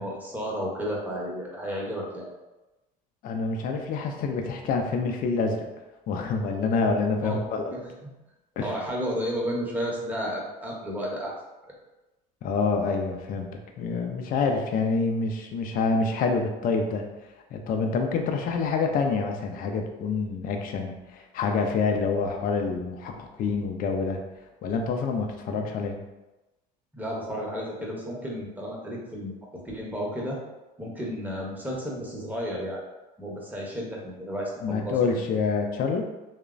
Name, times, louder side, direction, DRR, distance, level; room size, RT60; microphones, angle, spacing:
voice 1, 0.0-2.3 7.2-8.0 8.6-11.3 26.9-29.3 29.7-30.4 30.8-32.8 33.2-35.2, equal, 10° right, -3 dB, 0.7 m, -32 dB
voice 2, 3.2-5.7 6.1-7.7 8.6-8.7 12.4-13.5 13.8-17.1 17.5-24.2 24.6-26.0 34.6-36.0, left 4 dB, 45° left, 3 dB, 0.4 m, -27 dB
2.9 x 2.0 x 2.4 m, 1.1 s
hypercardioid pair, 80°, 21 cm